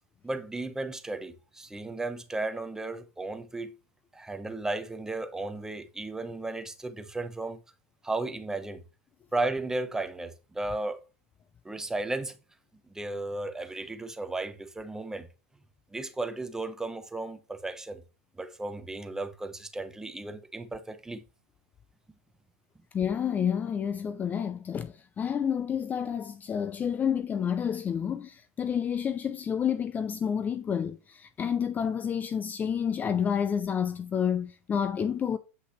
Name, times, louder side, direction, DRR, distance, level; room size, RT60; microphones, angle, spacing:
voice 1, 0.2-3.8 4.1-7.6 8.0-8.8 9.3-11.0 11.6-12.4 12.9-15.3 15.9-18.0 18.4-21.2, right 2 dB, 5° right, 0.8 m, -34 dB
voice 2, 22.9-35.4, left 8 dB, 20° left, 0.5 m, -29 dB
8.0 x 5.7 x 3.1 m
hypercardioid pair, 110°, 8 cm